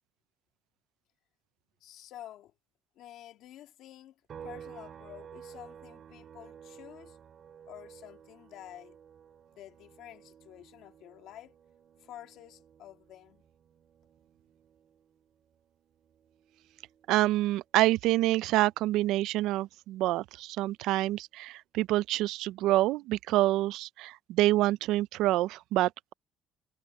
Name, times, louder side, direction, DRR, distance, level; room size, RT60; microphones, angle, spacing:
voice 1, 1.8-2.5 3.0-7.2 7.7-9.0 9.5-11.5 12.0-13.4, left 12 dB, 60° left, 1.8 m, -50 dB
sound 1, 4.3-17.8 18.2-20.4, right 8 dB, 35° right, 3.7 m, -53 dB
voice 2, 17.1-26.1, right 16 dB, 70° right, 0.3 m, -27 dB
cardioid pair, 175°, 0 cm